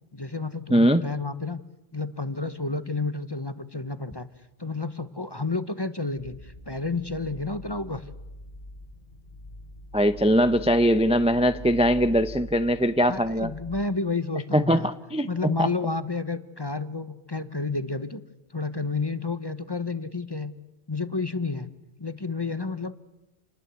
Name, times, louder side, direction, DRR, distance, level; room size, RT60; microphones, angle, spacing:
voice 1, 0.1-1.6 1.9-4.3 4.6-8.0 13.1-14.9 15.2-18.2 18.5-20.5 20.9-21.7 22.0-22.9, left 3 dB, 25° left, 1.0 m, -30 dB
voice 2, 0.7-1.0 9.9-13.5 14.5-15.3 15.6-15.7, equal, 5° right, 0.7 m, -21 dB
sound 1, 6.2-13.8, left 1 dB, 45° left, 1.8 m, -43 dB
28.5 x 20.5 x 8.3 m
omnidirectional pair, 1.2 m